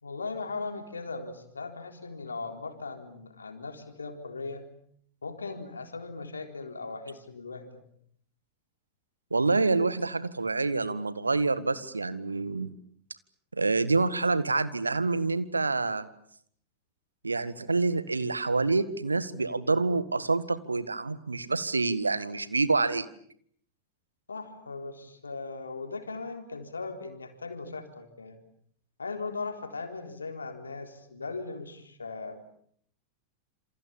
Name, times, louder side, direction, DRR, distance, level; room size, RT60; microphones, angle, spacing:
voice 1, 0.0-4.7 5.2-7.8 24.3-28.4 29.0-32.4, left 3 dB, 75° left, 6 dB, 3.9 m, -38 dB
voice 2, 9.3-12.7 13.5-16.0 17.2-23.1, right 3 dB, 80° right, 14 dB, 1.7 m, -27 dB
28.0 x 27.0 x 7.2 m, 0.64 s
figure-of-eight pair, 90°, 0 cm